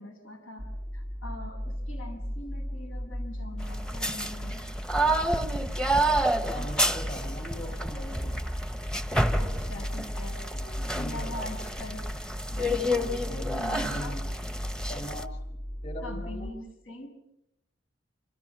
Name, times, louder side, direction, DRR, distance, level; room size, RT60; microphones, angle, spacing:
voice 1, 0.0-4.7 9.3-10.5 10.9-12.0 12.5-14.2 14.8-14.9 16.0-17.2, left 1 dB, 80° left, 3 dB, 7.1 m, -42 dB
sound 1, 0.6-16.5, equal, 20° left, 1.9 m, -36 dB
sound 2, 3.6-15.2, right 1 dB, 5° left, 1.0 m, -30 dB
voice 2, 6.4-8.4 9.2-10.2 10.5-11.7 12.6-14.3 14.9-15.6 15.8-16.5, equal, 35° left, 7 dB, 6.2 m, -42 dB
29.0 x 27.0 x 6.1 m, 0.81 s
head